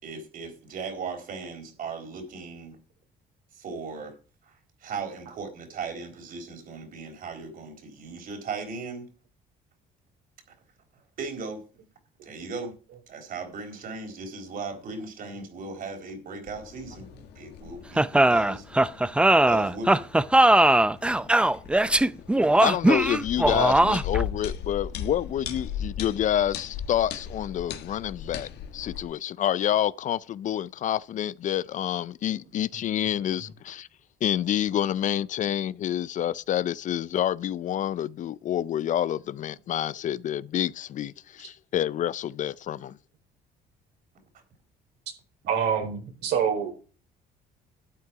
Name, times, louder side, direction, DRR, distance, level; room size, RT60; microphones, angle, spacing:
voice 1, 0.0-2.8 3.6-4.1 4.4-4.5 4.8-9.1 11.2-11.6 12.2-12.7 13.1-17.1 17.4-18.6 19.5-20.0, right 4 dB, 55° right, 4.2 m, -37 dB
sound 1, 16.5-29.0, left 8 dB, 75° left, 1.5 m, -38 dB
sound 2, 18.0-24.2, right 1 dB, 5° right, 0.5 m, -20 dB
voice 2, 22.6-33.9 34.2-43.0, left 11 dB, 50° left, 0.4 m, -28 dB
voice 3, 45.5-46.7, right 7 dB, 80° right, 4.4 m, -26 dB
12.0 x 8.6 x 4.7 m
cardioid pair, 110°, 17 cm